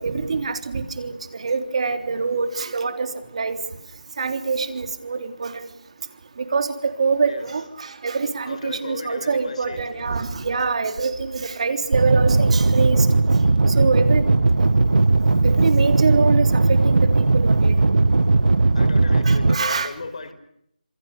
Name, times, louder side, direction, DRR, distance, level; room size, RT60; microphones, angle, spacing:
voice 1, 0.0-3.6 4.2-5.6 6.4-13.1 13.8-14.2 15.3-17.8 19.3-19.9, right 4 dB, 45° right, 8 dB, 3.5 m, -25 dB
voice 2, 8.4-10.2 18.7-20.3, left 4 dB, 45° left, 11 dB, 4.6 m, -36 dB
sound 1, 11.9-19.6, right 3 dB, 65° right, 1.4 m, -17 dB
27.5 x 24.5 x 6.8 m, 0.74 s
figure-of-eight pair, 165°, 5 cm